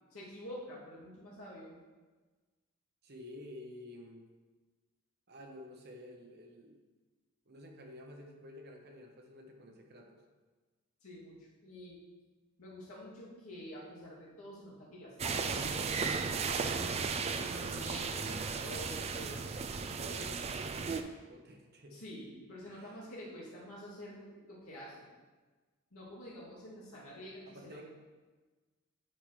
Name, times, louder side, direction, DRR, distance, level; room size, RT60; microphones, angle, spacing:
voice 1, 0.1-1.8 11.0-11.3 11.6-11.9 12.6-16.6 17.4-19.5 20.2-20.3 21.9-25.1 25.9-27.9, equal, 70° left, -7 dB, 2.5 m, -48 dB
voice 2, 3.0-4.3 5.3-6.8 7.5-10.2 20.0-22.0 22.7-23.0 27.5-27.8, left 1 dB, 50° right, 2 dB, 0.9 m, -51 dB
sound 1, 15.2-21.0, right 5 dB, 30° right, 0.3 m, -35 dB
10.0 x 5.0 x 3.2 m, 1.3 s
head